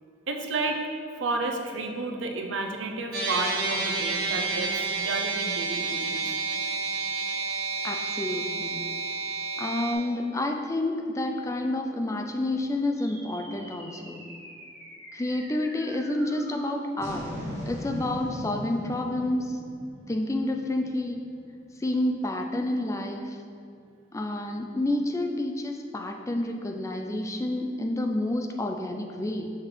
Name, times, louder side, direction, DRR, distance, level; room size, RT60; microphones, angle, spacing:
voice 1, 0.3-0.8 1.1-6.3, right 3 dB, 80° right, 3 dB, 0.6 m, -31 dB
sound 1, 3.1-9.9, right 4 dB, 55° right, 0.9 m, -30 dB
voice 2, 7.8-8.8 9.6-14.3 15.1-17.4 17.7-19.6 20.1-21.2 21.8-23.4 24.1-29.5, left 1 dB, 15° left, 4 dB, 0.3 m, -29 dB
sound 2, 13.0-21.5, equal, 15° right, 1.4 m, -41 dB
6.4 x 4.8 x 3.8 m, 2.4 s
head